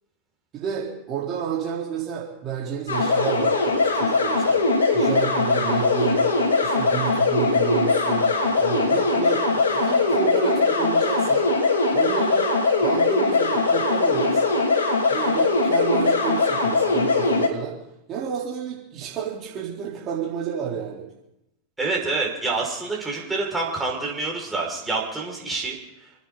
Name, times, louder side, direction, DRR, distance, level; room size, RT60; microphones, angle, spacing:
voice 1, 0.5-4.7 4.9-6.3 6.6-11.5 11.9-14.5 15.1-17.8 18.1-21.1, right 8 dB, 40° right, -5 dB, 4.0 m, -30 dB
sound 1, 2.9-17.5, left 3 dB, 85° left, 2.8 m, -21 dB
voice 2, 21.8-25.8, right 3 dB, 10° right, -2 dB, 6.0 m, -27 dB
30.0 x 10.0 x 4.1 m, 0.84 s
hypercardioid pair, 100°, 0 cm